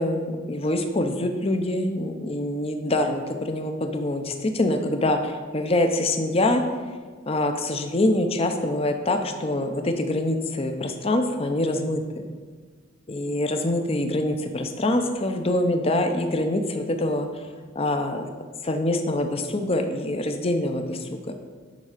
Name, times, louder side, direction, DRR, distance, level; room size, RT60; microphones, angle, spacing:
voice 1, 0.0-6.6 7.3-12.2 13.1-17.3 17.7-18.3 18.6-21.3, left 1 dB, 30° left, 6 dB, 0.6 m, -25 dB
11.0 x 3.7 x 5.0 m, 1.5 s
head